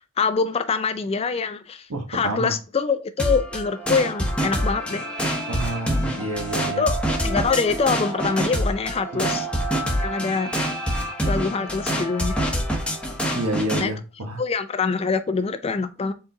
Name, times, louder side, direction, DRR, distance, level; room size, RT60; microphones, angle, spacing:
voice 1, 0.2-5.0 6.8-9.5 10.0-10.5 11.3-12.4 13.8-13.9 14.4-16.1, left 5 dB, 25° left, 0.3 m, -24 dB
voice 2, 1.9-2.5 5.5-6.8 9.2-9.3 13.3-14.4, right 1 dB, 85° right, 1.2 m, -29 dB
sound 1, 3.2-13.9, equal, 5° left, 0.8 m, -26 dB
4.5 x 3.8 x 2.7 m
head